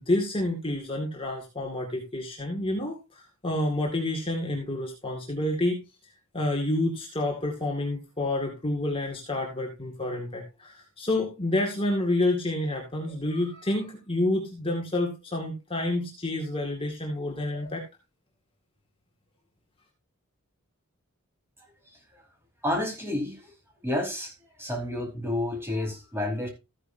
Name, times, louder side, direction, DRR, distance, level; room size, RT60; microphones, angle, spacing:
voice 1, 0.0-5.8 6.3-17.8, left 1 dB, 25° left, 0 dB, 2.1 m, -29 dB
voice 2, 21.9-22.2 22.6-23.5 23.8-24.3 24.6-26.5, left 1 dB, 10° right, 0 dB, 4.7 m, -30 dB
14.5 x 9.9 x 2.7 m, 0.27 s
head